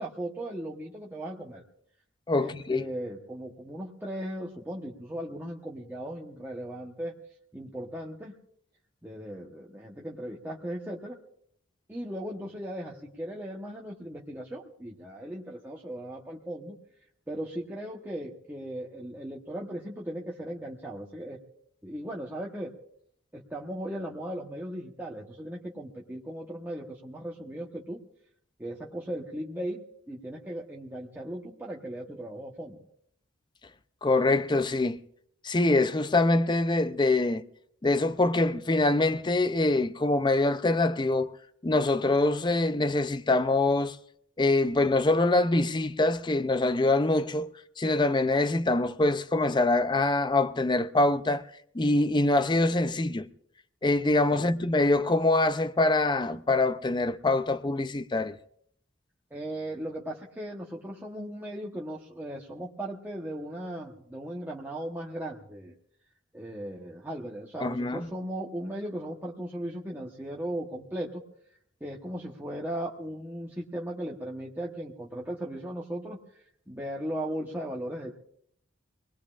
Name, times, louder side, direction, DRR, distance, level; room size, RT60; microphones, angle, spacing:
voice 1, 0.0-1.6 2.3-7.1 7.5-8.3 9.0-11.2 11.9-16.7 17.3-21.4 21.8-22.7 23.3-28.0 28.6-32.8 54.3-54.5 59.3-65.7 66.3-71.2 71.8-76.2 76.7-78.1, right 1 dB, 10° right, 1.1 m, -37 dB
voice 2, 2.3-2.8 34.0-35.0 35.4-37.4 37.8-41.3 41.6-44.0 44.4-47.5 47.8-51.4 51.7-53.3 53.8-58.4 67.6-68.1, left 2 dB, 25° left, 0.5 m, -24 dB
25.0 x 19.5 x 2.5 m
head